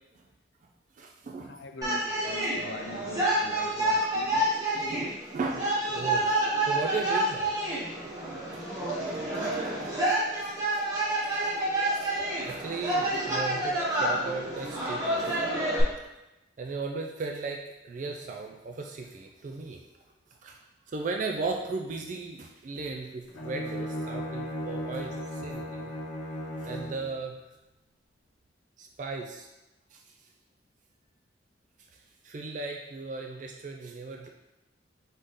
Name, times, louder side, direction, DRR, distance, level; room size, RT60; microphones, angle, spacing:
voice 1, 0.9-1.6 4.2-6.3 6.7-7.5 8.5-8.6 10.1-10.2 11.2-12.1 12.4-15.4 16.6-19.8 20.4-20.6 20.9-25.9 26.6-27.4 28.8-29.5 29.9-30.2 31.9-34.3, right 4 dB, 45° right, 2 dB, 0.3 m, -36 dB
voice 2, 1.5-4.3, left 3 dB, 60° left, 5 dB, 0.4 m, -41 dB
sound 1, 1.8-15.8, right 1 dB, 20° right, 1.1 m, -29 dB
Bowed string instrument, 23.3-27.1, equal, 85° left, 0.8 m, -36 dB
4.0 x 3.7 x 3.5 m, 0.97 s
head